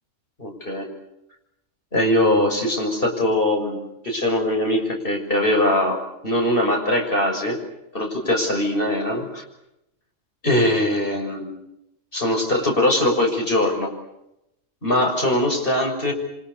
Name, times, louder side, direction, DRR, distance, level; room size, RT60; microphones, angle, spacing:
voice 1, 0.4-0.9 1.9-6.0 6.2-7.6 7.9-9.4 10.4-11.6 12.1-13.9 14.8-16.1, left 1 dB, 45° left, 1 dB, 6.7 m, -21 dB
28.5 x 25.5 x 7.0 m, 0.85 s
omnidirectional pair, 1.3 m